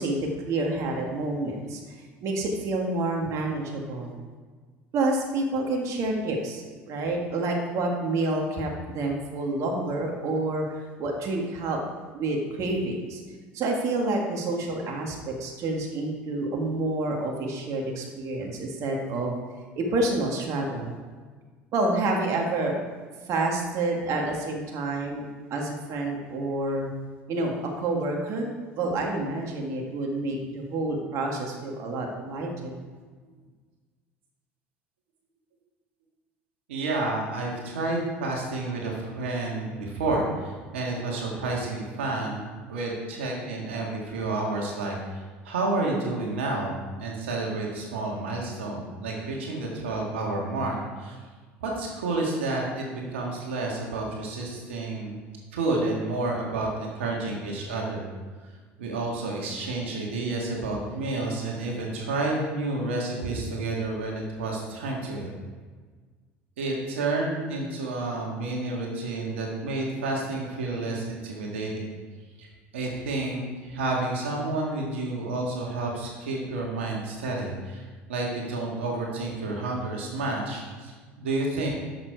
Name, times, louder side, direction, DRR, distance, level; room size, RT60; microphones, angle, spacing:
voice 1, 0.0-1.8 2.2-4.1 4.9-8.7 8.9-10.6 11.0-11.8 12.1-13.2 13.5-19.3 19.8-20.9 21.7-22.8 23.3-25.2 25.5-26.9 27.3-32.8, right 2 dB, 55° right, 0 dB, 1.9 m, -28 dB
voice 2, 36.7-51.2 51.6-55.2 55.5-58.0 58.8-65.3 66.6-71.9 72.4-72.5 72.7-81.7, right 2 dB, 85° right, -1 dB, 1.8 m, -30 dB
11.0 x 7.0 x 4.7 m, 1.5 s
hypercardioid pair, 75°, 6 cm